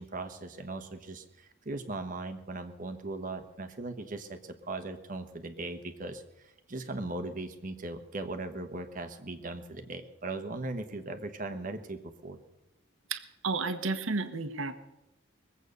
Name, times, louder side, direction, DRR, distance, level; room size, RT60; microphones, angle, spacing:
voice 1, 0.0-12.4, right 2 dB, 40° right, 7 dB, 1.2 m, -39 dB
voice 2, 13.1-14.7, right 3 dB, 75° right, 10 dB, 1.2 m, -32 dB
22.0 x 8.2 x 6.7 m, 0.99 s
head